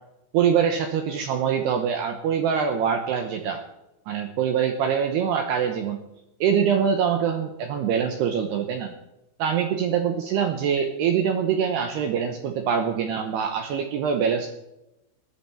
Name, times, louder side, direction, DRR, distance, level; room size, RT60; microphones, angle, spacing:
voice 1, 0.3-3.6 4.1-6.0 6.4-8.9 9.4-14.5, right 7 dB, 75° right, 6 dB, 2.5 m, -24 dB
19.5 x 11.0 x 4.5 m, 0.91 s
omnidirectional pair, 5.9 m